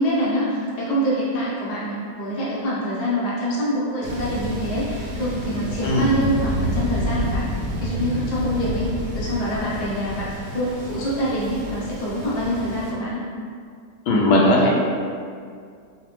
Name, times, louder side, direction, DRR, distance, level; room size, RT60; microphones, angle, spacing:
voice 1, 0.0-7.4 7.8-8.9 9.1-10.3 10.5-13.2, equal, 40° left, -8 dB, 0.6 m, -25 dB
Thunder, 4.0-12.9, equal, 75° right, 1.2 m, -29 dB
voice 2, 14.1-14.7, left 1 dB, 80° left, -4 dB, 1.2 m, -17 dB
4.0 x 2.4 x 2.9 m, 2.2 s
omnidirectional pair, 1.9 m